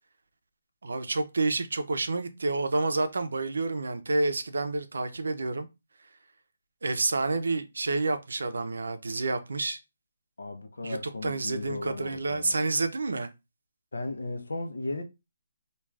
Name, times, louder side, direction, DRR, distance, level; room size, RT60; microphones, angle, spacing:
voice 1, 0.8-5.7 6.8-9.8 10.8-11.0 11.2-13.3, right 3 dB, 80° right, 0.5 m, -29 dB
voice 2, 10.4-12.6 13.9-15.0, left 2 dB, 90° left, 0.6 m, -36 dB
2.4 x 2.3 x 3.2 m
hypercardioid pair, 165°, 0 cm